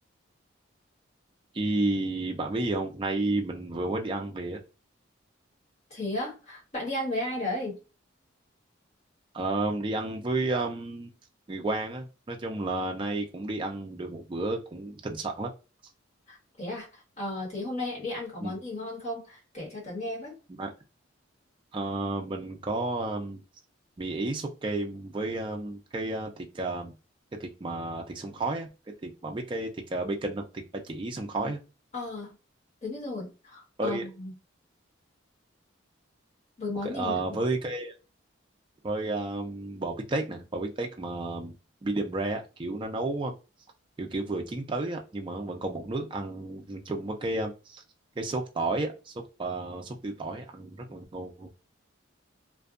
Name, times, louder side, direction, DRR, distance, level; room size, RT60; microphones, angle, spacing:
voice 1, 1.5-4.6 9.3-11.1 11.5-15.5 18.4-18.6 20.6-20.7 21.7-23.4 24.0-26.9 27.4-28.7 29.0-31.6 33.8-34.0 36.8-37.9 38.8-41.6 41.8-43.3 44.0-47.8 48.2-49.1 49.4-51.5, right 2 dB, 25° right, 2 dB, 0.4 m, -32 dB
voice 2, 5.9-7.8 16.3-20.4 31.9-32.3 32.8-34.3 36.6-37.4, left 2 dB, 35° left, -3 dB, 1.3 m, -34 dB
2.5 x 2.2 x 2.4 m, 0.30 s
head